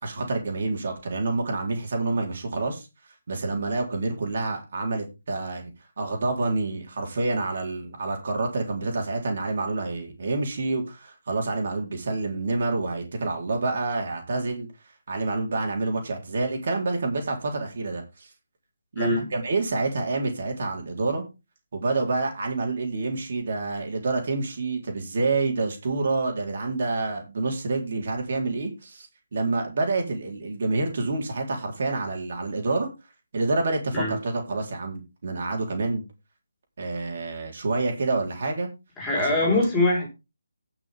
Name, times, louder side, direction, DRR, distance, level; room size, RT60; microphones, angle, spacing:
voice 1, 0.0-2.9 3.3-5.7 6.0-14.7 15.1-18.3 18.9-21.2 21.7-32.9 33.3-36.0 36.8-38.7 39.1-39.3, right 3 dB, 50° right, 2 dB, 4.1 m, -28 dB
voice 2, 19.0-19.3 33.9-34.1 39.0-40.1, left 2 dB, 10° left, -3 dB, 4.9 m, -23 dB
17.5 x 6.2 x 3.8 m, 0.27 s
figure-of-eight pair, 155°, 0 cm